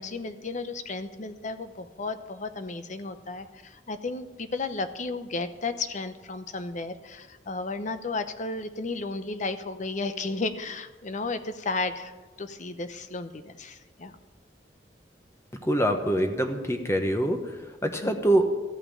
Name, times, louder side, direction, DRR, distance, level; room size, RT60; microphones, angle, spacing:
voice 1, 0.0-12.1 12.4-14.2 18.0-18.1, left 3 dB, 45° left, 10 dB, 0.8 m, -33 dB
voice 2, 15.6-17.4 17.8-18.4, right 1 dB, 15° left, 5 dB, 1.1 m, -24 dB
14.0 x 5.7 x 8.6 m, 1.2 s
head